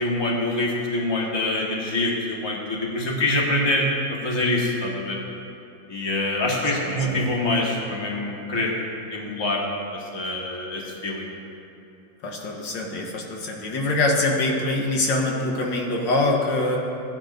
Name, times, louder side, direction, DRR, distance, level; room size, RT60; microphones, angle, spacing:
voice 1, 0.0-3.9 4.2-5.2 5.9-8.7 9.1-9.6 9.9-11.3, left 2 dB, 15° left, -3 dB, 1.3 m, -25 dB
voice 2, 6.8-7.2 12.2-16.8, left 2 dB, 75° left, 0 dB, 1.9 m, -24 dB
16.0 x 10.0 x 2.6 m, 2.8 s
omnidirectional pair, 2.0 m